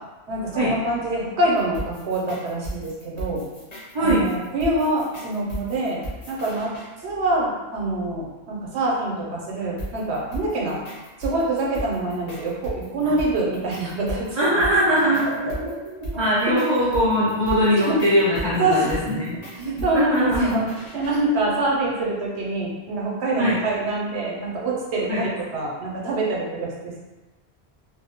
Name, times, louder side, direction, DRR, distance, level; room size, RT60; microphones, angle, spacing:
voice 1, 0.3-3.4 4.0-6.0 6.3-6.7 7.0-10.8 11.2-14.3 17.7-18.0 18.5-19.0 19.6-20.6 20.9-27.0, right 2 dB, 80° right, -3 dB, 0.9 m, -25 dB
sound 1, 1.6-6.9 9.8-21.2, right 1 dB, 45° left, 0.7 m, -35 dB
voice 2, 3.9-4.3 13.0-13.2 14.3-20.6 23.4-23.6 25.1-25.2, equal, 45° right, -10 dB, 0.4 m, -21 dB
2.2 x 2.1 x 2.8 m, 1.1 s
omnidirectional pair, 1.1 m